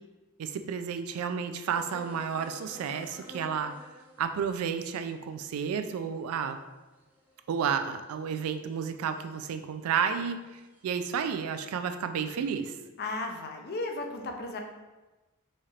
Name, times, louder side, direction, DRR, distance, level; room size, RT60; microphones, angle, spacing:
voice 1, 0.4-3.7 4.2-6.6 7.5-12.8, right 7 dB, 90° right, 9 dB, 0.3 m, -31 dB
sound 1, 1.7-8.1 8.7-9.5 9.9-11.0, left 1 dB, 10° right, 0.5 m, -51 dB
voice 2, 13.0-14.6, left 2 dB, 50° left, 3 dB, 0.5 m, -35 dB
4.2 x 3.2 x 2.4 m, 1.1 s
head